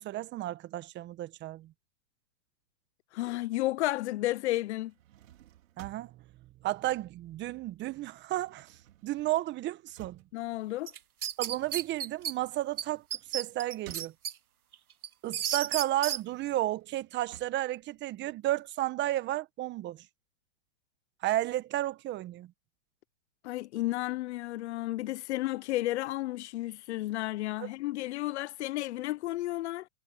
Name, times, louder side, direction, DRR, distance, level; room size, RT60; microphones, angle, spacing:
voice 1, 0.0-1.7 5.8-6.1 6.6-8.7 9.0-10.2 11.4-13.0 13.3-14.1 15.2-20.0 21.2-22.5 27.6-27.7, right 15 dB, 25° right, 1.2 m, -32 dB
voice 2, 3.1-4.9 10.3-10.9 23.4-29.9, left 17 dB, 50° left, 0.7 m, -32 dB
sound 1, 4.7-7.6 7.9-14.7 15.2-18.7, right 13 dB, 65° right, 4.7 m, -56 dB
sound 2, 10.9-12.3 12.8-12.9 13.1-14.3 14.7-16.2, right 9 dB, 90° right, 1.5 m, -33 dB
hypercardioid pair, 130°, 43 cm